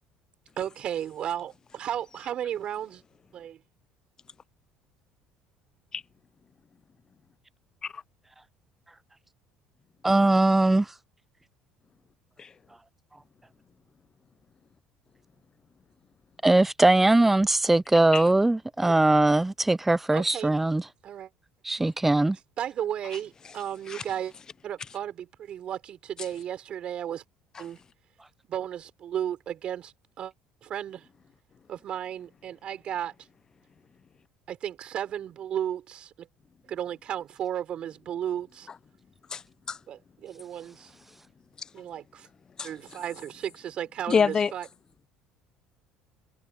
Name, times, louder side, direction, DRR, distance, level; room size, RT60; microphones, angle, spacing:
voice 1, 0.6-3.0 3.3-3.6 18.8-19.0 20.1-20.5 21.0-21.3 22.6-24.3 24.6-27.2 27.6-27.8 28.5-30.3 30.6-31.1 31.7-33.1 34.5-36.3 36.7-38.7 39.9-40.9 41.7-42.3 42.6-44.7, right 10 dB, 50° right, 5.4 m, -34 dB
voice 2, 10.0-10.9 16.4-20.8 21.6-22.4, right 2 dB, 10° right, 0.6 m, -21 dB
voice 3, 44.1-44.5, left 6 dB, 30° left, 0.7 m, -25 dB
supercardioid pair, 95°, 2 cm